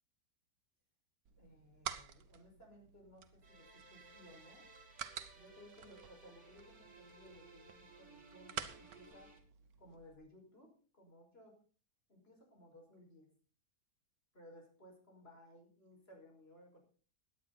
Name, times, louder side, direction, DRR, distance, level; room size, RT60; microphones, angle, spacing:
sound 1, 1.2-10.2, right 8 dB, 70° right, 1.4 m, -50 dB
voice 1, 1.4-4.7 5.3-9.3 9.8-11.6 12.1-13.3 14.3-16.8, equal, 40° left, 1 dB, 5.7 m, -60 dB
sound 2, 3.4-9.4, right 3 dB, 50° right, 2.6 m, -60 dB
17.0 x 10.5 x 4.1 m, 0.40 s
omnidirectional pair, 1.6 m